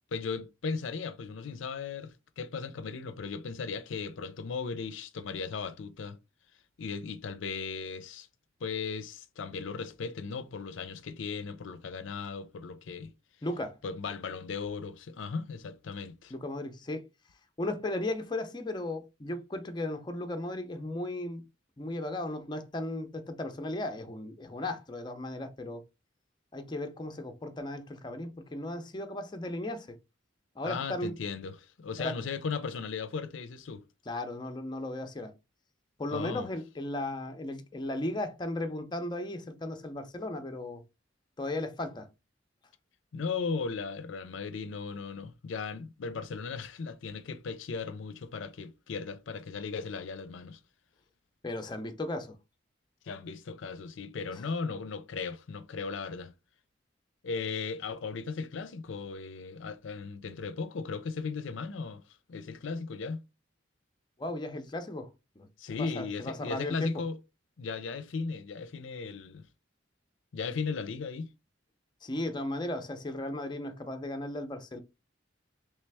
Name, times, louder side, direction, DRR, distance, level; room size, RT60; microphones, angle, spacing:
voice 1, 0.1-6.2 6.8-8.3 8.6-13.1 13.8-16.3 30.6-33.8 36.1-36.5 43.1-50.6 53.0-56.3 57.2-62.0 62.3-63.2 65.6-67.2 67.6-69.5 70.3-71.3, left 5 dB, 80° left, 0.5 m, -37 dB
voice 2, 13.4-13.8 16.3-17.0 17.6-21.4 21.8-25.8 26.5-30.0 30.6-31.2 32.0-32.2 34.1-35.4 36.0-40.8 41.4-42.1 51.4-52.4 64.2-66.9 72.0-74.8, left 1 dB, 25° left, 0.5 m, -36 dB
3.2 x 3.2 x 3.3 m
head